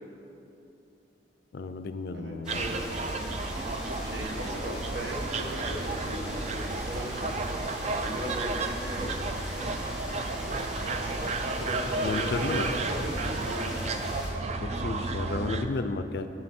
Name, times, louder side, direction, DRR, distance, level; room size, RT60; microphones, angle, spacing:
voice 1, 1.5-2.6 12.0-12.7 14.5-16.3, left 3 dB, 60° left, 10 dB, 0.4 m, -32 dB
voice 2, 2.1-2.8 4.0-7.3 8.0-9.2 10.8-11.2 11.6-13.8, equal, 70° right, 0 dB, 1.2 m, -38 dB
sound 1, 2.4-14.3, equal, 5° right, 1.2 m, -39 dB
sound 2, 2.5-15.7, right 3 dB, 35° right, 0.4 m, -32 dB
7.6 x 7.6 x 4.3 m, 2.7 s
head